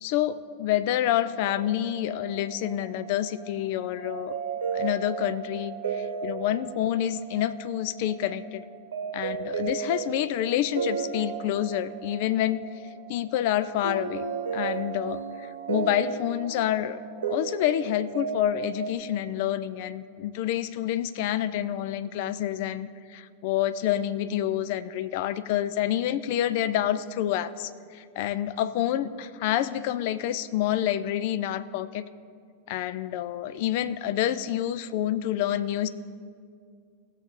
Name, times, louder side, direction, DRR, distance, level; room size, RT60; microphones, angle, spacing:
voice 1, 0.0-4.4 4.7-5.7 6.2-8.6 9.1-12.7 13.1-14.2 14.5-32.1 32.7-35.9, left 12 dB, 50° left, 13 dB, 0.4 m, -28 dB
sound 1, 1.4-18.9, right 6 dB, 70° right, 0.9 m, -35 dB
18.0 x 6.6 x 3.7 m, 2.2 s
figure-of-eight pair, 90°, 0 cm